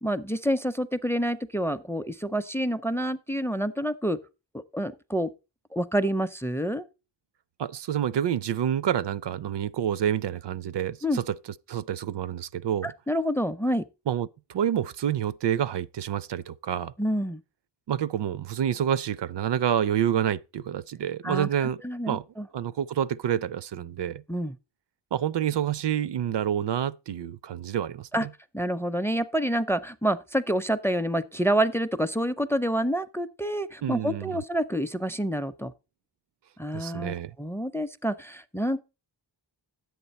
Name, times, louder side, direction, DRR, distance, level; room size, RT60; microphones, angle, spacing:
voice 1, 0.0-4.2 4.5-5.3 5.7-6.9 11.0-11.2 12.8-13.8 17.0-17.4 21.2-21.5 21.8-22.5 24.3-24.6 28.1-28.3 28.5-35.7 36.6-38.8, equal, 5° left, 0.4 m, -28 dB
voice 2, 7.6-11.4 11.7-12.9 14.1-16.9 17.9-21.8 22.1-22.2 22.5-24.2 25.1-28.3 33.8-34.4 36.7-37.3, right 9 dB, 65° right, 0.5 m, -28 dB
10.5 x 8.0 x 4.1 m
wide cardioid pair, 115°, 45 cm